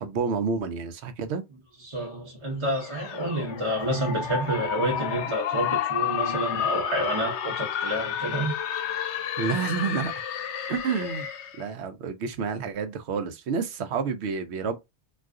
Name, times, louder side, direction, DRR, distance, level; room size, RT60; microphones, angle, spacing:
voice 1, 0.0-1.4 9.4-10.1 10.7-11.3 11.6-14.8, right 5 dB, 75° right, 0.8 m, -29 dB
voice 2, 1.8-8.5, right 1 dB, 30° right, 0.8 m, -29 dB
sound 1, 2.8-11.6, left 9 dB, 80° left, 0.9 m, -31 dB
2.4 x 2.3 x 3.6 m
omnidirectional pair, 1.2 m